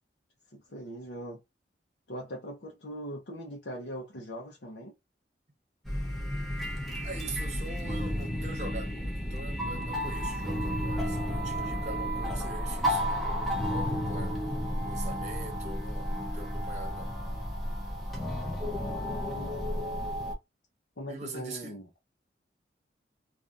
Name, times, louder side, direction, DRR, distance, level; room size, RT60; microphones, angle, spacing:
voice 1, 0.5-1.4 2.1-4.9 19.2-19.6 21.0-21.9, equal, 80° left, 0.9 m, -41 dB
sound 1, 5.9-20.3, equal, ahead, 0.9 m, -32 dB
voice 2, 7.0-14.4 14.8-17.1 21.1-21.8, right 2 dB, 40° right, 1.2 m, -43 dB
3.5 x 2.6 x 2.6 m
head